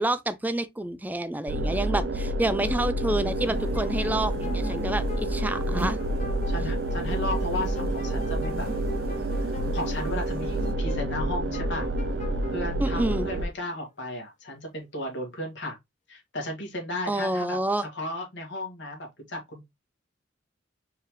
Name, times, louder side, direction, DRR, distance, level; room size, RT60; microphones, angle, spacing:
voice 1, 0.0-6.0 12.8-13.3 17.1-17.8, right 1 dB, 10° right, 0.4 m, -28 dB
sound 1, 1.5-13.5, right 1 dB, 75° right, 0.7 m, -28 dB
sound 2, 3.2-10.7, equal, 55° right, 1.3 m, -41 dB
sound 3, 3.4-13.8, equal, 40° left, 1.1 m, -41 dB
voice 2, 6.5-8.7 9.4-11.9 12.5-15.8 16.1-19.7, left 1 dB, 70° left, 1.9 m, -35 dB
4.6 x 3.8 x 3.0 m
head